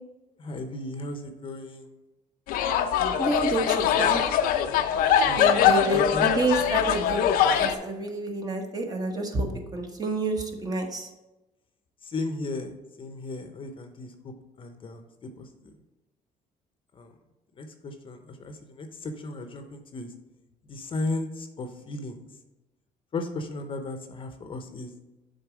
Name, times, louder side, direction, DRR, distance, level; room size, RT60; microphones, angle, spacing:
voice 1, 0.4-1.9 5.3-6.3 12.0-15.5 16.9-17.1 17.6-20.1 20.7-22.2 23.1-24.9, left 2 dB, 35° left, 6 dB, 0.7 m, -35 dB
sound 1, 2.5-7.7, left 8 dB, 80° left, 0.5 m, -22 dB
voice 2, 3.2-4.2 5.4-7.2 7.5-11.1, right 2 dB, 25° right, 3 dB, 1.0 m, -29 dB
6.8 x 3.9 x 4.9 m, 1.0 s
cardioid pair, 110°, 15 cm